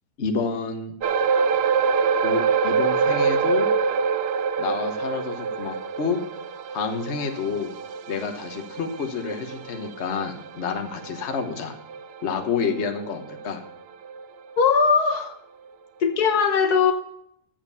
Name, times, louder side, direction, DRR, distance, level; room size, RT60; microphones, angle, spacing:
voice 1, 0.2-0.9 2.2-3.7 4.6-6.2 6.7-7.7 8.1-11.7 12.2-13.6, left 5 dB, 50° left, 5 dB, 1.3 m, -29 dB
sound 1, 1.0-13.7 14.0-14.2 14.8-14.9, right 6 dB, 85° right, 0.5 m, -26 dB
voice 2, 14.6-15.4 16.0-16.9, left 5 dB, 75° left, 7 dB, 1.6 m, -19 dB
7.7 x 7.4 x 6.7 m, 0.72 s
omnidirectional pair, 1.7 m